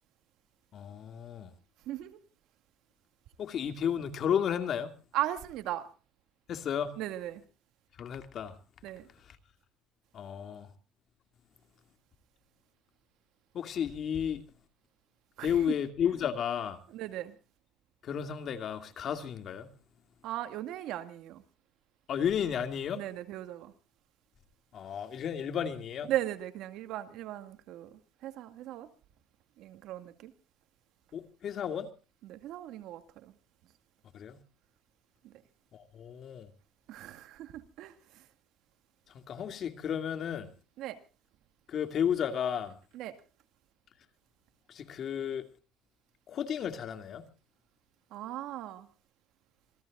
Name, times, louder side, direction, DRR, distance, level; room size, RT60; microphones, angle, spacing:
voice 1, 0.7-1.5 3.4-4.9 6.5-7.0 8.0-8.6 10.1-10.7 13.5-14.4 15.4-16.8 18.0-19.7 22.1-23.0 24.7-26.1 31.1-31.9 34.1-34.4 35.7-36.5 39.1-40.5 41.7-42.8 44.7-45.5 46.3-47.2, left 8 dB, 50° left, 2.5 m, -33 dB
voice 2, 1.9-2.2 5.1-5.8 7.0-7.4 8.8-9.1 15.4-15.7 16.9-17.4 20.2-21.4 23.0-23.7 26.1-28.9 29.6-30.3 32.3-33.3 35.2-35.3 36.9-38.2 40.8-41.0 42.9-43.1 48.1-48.9, right 13 dB, 75° right, 2.2 m, -37 dB
26.5 x 17.5 x 2.5 m
cardioid pair, 115°, 0 cm